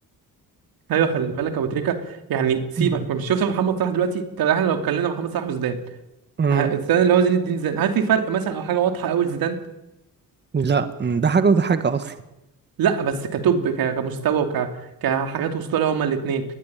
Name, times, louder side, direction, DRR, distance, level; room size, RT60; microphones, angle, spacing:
voice 1, 0.9-5.8 6.5-9.6 12.8-14.7 15.0-16.4, right 7 dB, 90° right, 7 dB, 2.9 m, -22 dB
voice 2, 6.4-6.7 10.5-12.1, right 5 dB, 30° right, 10 dB, 1.5 m, -20 dB
20.5 x 20.0 x 9.0 m, 0.93 s
wide cardioid pair, 150°, 35 cm